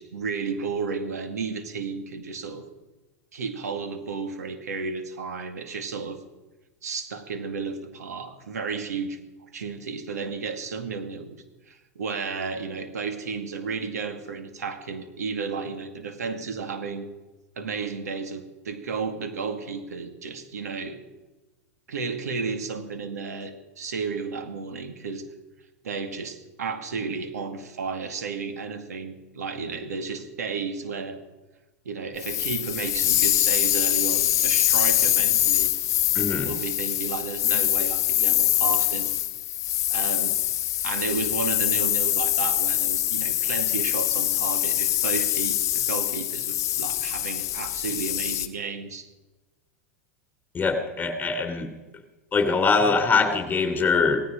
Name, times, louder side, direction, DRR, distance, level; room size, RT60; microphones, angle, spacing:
voice 1, 0.0-2.7 3.3-6.2 6.8-9.2 9.5-17.1 17.6-21.0 21.9-25.2 25.8-31.2 31.9-35.7 36.4-39.1 39.9-40.4 40.8-49.1, right 5 dB, 85° right, 7 dB, 2.1 m, -33 dB
sound 1, 32.2-48.5, left 13 dB, 40° left, 1.3 m, -24 dB
voice 2, 36.1-36.5 50.5-51.7 52.3-54.2, left 4 dB, 20° left, 7 dB, 3.2 m, -23 dB
17.5 x 15.5 x 5.2 m, 1.1 s
hypercardioid pair, 110°, 8 cm